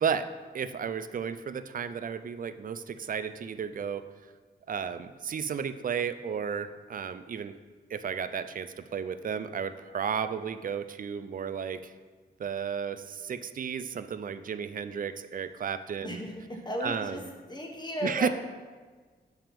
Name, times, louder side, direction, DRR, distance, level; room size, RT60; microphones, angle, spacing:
voice 1, 0.5-4.1 4.7-7.5 7.9-11.9 12.4-16.2 16.8-17.3 18.0-18.3, right 7 dB, 50° right, 11 dB, 0.4 m, -33 dB
voice 2, 16.0-17.2 17.5-18.3, left 1 dB, 25° left, 1 dB, 1.1 m, -35 dB
7.1 x 5.8 x 3.4 m, 1.4 s
wide cardioid pair, 90°, 18 cm